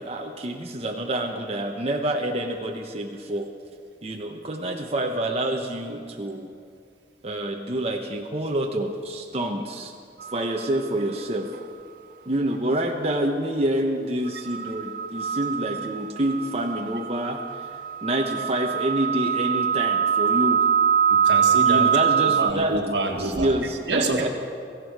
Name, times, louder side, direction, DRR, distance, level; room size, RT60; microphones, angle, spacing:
voice 1, 0.0-3.5 4.0-6.5 7.2-9.9 10.3-11.5 12.3-20.7 21.6-22.7 23.1-24.3, right 1 dB, 35° right, 2 dB, 0.9 m, -27 dB
sound 1, 10.2-10.6 14.3-22.5, right 8 dB, 50° right, 0.3 m, -23 dB
voice 2, 21.1-23.5 23.9-24.3, right 2 dB, 75° right, 3 dB, 1.7 m, -27 dB
18.0 x 15.0 x 4.7 m, 2.4 s
head